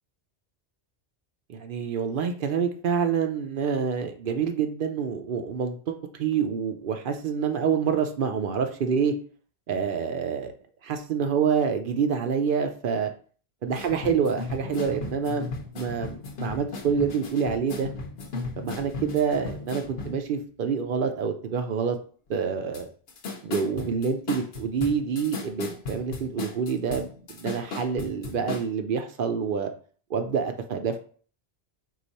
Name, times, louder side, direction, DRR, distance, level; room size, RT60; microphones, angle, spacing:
voice 1, 1.5-9.1 9.7-10.5 10.8-13.1 13.6-17.9 18.6-22.0 22.3-22.9 23.4-29.7 30.1-31.0, right 6 dB, 60° right, 6 dB, 0.7 m, -27 dB
sound 1, 13.7-20.3 22.7-22.8 23.1-28.7, left 3 dB, 70° left, 1.0 m, -36 dB
4.7 x 2.4 x 4.0 m, 0.43 s
omnidirectional pair, 1.1 m